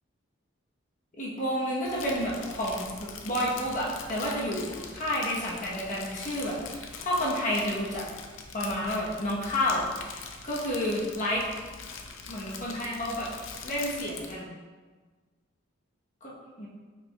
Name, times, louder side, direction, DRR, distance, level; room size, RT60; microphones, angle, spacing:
voice 1, 1.2-8.0 8.5-9.8 10.4-11.5 12.3-13.3 13.6-14.5 16.2-16.7, left 1 dB, 40° left, -5 dB, 0.9 m, -30 dB
Crumpling crinkling, 1.8-14.4, left 5 dB, 70° left, 0.5 m, -43 dB
5.0 x 4.6 x 2.2 m, 1.4 s
head